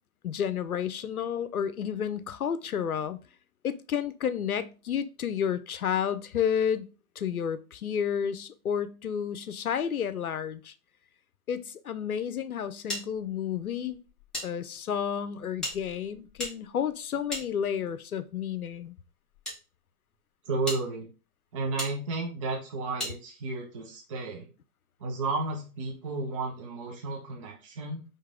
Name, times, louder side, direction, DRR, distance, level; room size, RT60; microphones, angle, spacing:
voice 1, 0.2-3.2 3.6-6.8 7.2-10.7 11.5-14.0 14.4-19.0, left 8 dB, 75° left, 0.6 m, -31 dB
sound 1, 12.9-14.5 14.8-14.9 15.6-18.0 18.8-19.6 20.1-20.2 20.6-20.8 21.8-21.9 23.0-23.2, left 1 dB, ahead, 0.9 m, -37 dB
voice 2, 20.5-21.1 21.5-24.5 25.0-28.0, right 3 dB, 25° right, 0.5 m, -33 dB
4.6 x 3.1 x 3.5 m
figure-of-eight pair, 125°, 44 cm